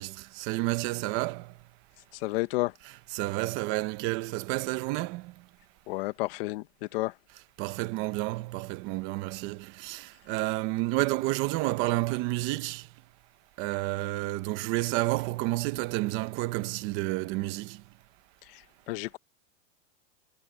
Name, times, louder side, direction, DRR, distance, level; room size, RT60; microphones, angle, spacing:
voice 1, 0.0-1.5 2.8-5.3 7.6-12.9 13.6-17.8, right 20 dB, 30° right, 1.0 m, -30 dB
voice 2, 2.2-2.7 5.9-6.6 6.9-7.1 18.9-19.2, left 20 dB, 50° left, 1.3 m, -30 dB
supercardioid pair, 170°, 37 cm